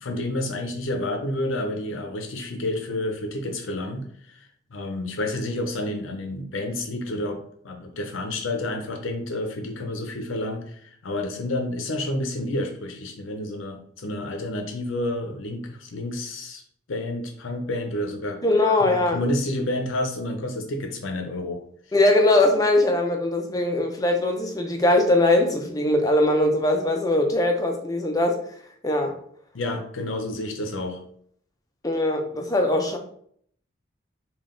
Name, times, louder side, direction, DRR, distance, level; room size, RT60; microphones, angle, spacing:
voice 1, 0.0-16.6 16.9-18.4 18.8-21.6 29.5-31.0, left 1 dB, 75° left, 4 dB, 0.6 m, -30 dB
voice 2, 18.4-19.2 21.9-28.4 28.8-29.2 31.8-33.0, left 1 dB, 20° left, 3 dB, 0.5 m, -21 dB
3.8 x 2.4 x 3.7 m, 0.62 s
head